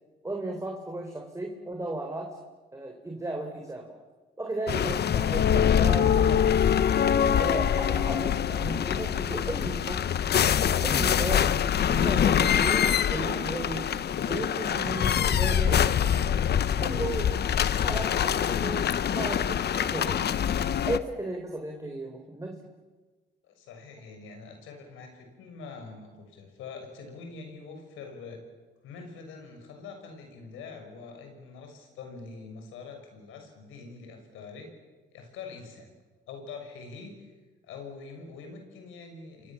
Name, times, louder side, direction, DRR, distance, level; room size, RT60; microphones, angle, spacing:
voice 1, 0.2-2.4 2.7-4.0 4.4-6.8 7.4-10.2 10.8-11.5 11.9-13.9 14.3-15.9 16.8-17.3 17.8-20.2 20.9-22.6, right 2 dB, 15° right, 2 dB, 3.7 m, -35 dB
sound 1, 4.7-21.0, left 9 dB, 55° left, 1.0 m, -24 dB
voice 2, 23.4-28.4 28.8-34.7 35.1-35.9 36.3-37.3 37.6-39.5, left 4 dB, 90° left, 5 dB, 6.3 m, -44 dB
29.0 x 24.0 x 7.4 m, 1.3 s
cardioid pair, 90°, 20 cm